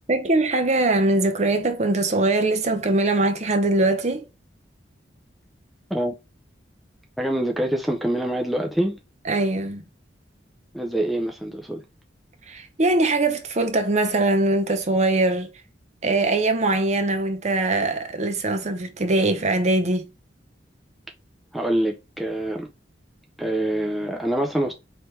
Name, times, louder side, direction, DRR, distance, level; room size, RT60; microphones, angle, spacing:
voice 1, 0.1-4.3 9.2-9.8 12.5-15.5 16.0-20.1, right 2 dB, 40° right, 0.7 m, -22 dB
voice 2, 7.2-9.0 10.7-11.8 21.5-22.7 23.4-24.7, right 1 dB, ahead, 0.4 m, -25 dB
4.5 x 3.2 x 3.1 m
head